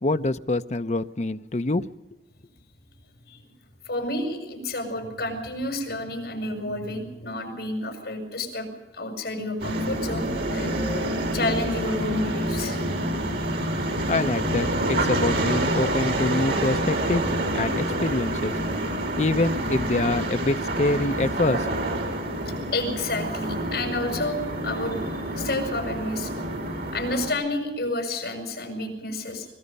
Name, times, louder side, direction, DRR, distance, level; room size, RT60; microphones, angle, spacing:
voice 1, 0.0-1.9 14.1-17.3 17.5-18.6 19.2-21.7, left 2 dB, 40° left, 0.7 m, -25 dB
voice 2, 3.9-8.7 8.9-10.8 11.3-12.8 22.5-25.0 25.3-26.3 26.9-29.5, left 2 dB, 65° left, 7.1 m, -30 dB
sound 1, 9.6-27.3, right 1 dB, 60° right, 4.3 m, -27 dB
25.0 x 20.5 x 5.4 m
head